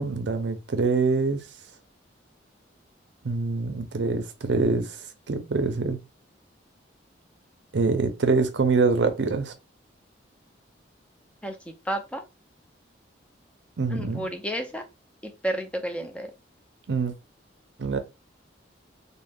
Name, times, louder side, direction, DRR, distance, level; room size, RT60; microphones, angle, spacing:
voice 1, 0.0-1.5 3.2-6.0 7.7-9.5 13.8-14.3 16.9-17.1 17.8-18.0, right 4 dB, 65° right, 0.5 m, -25 dB
voice 2, 11.4-12.2 13.9-14.8 15.2-16.3, right 1 dB, 5° left, 0.4 m, -31 dB
2.4 x 2.0 x 3.3 m
head